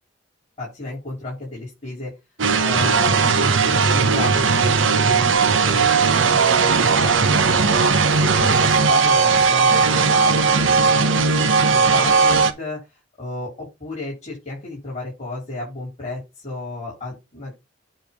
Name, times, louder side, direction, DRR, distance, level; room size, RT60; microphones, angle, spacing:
voice 1, 0.6-2.1 2.6-4.5 5.0-7.9 8.2-12.8 13.2-17.5, left 2 dB, 40° left, -5 dB, 4.5 m, -32 dB
sound 1, 2.4-12.5, right 5 dB, 90° right, 1.0 m, -17 dB
9.0 x 3.3 x 5.8 m, 0.24 s
head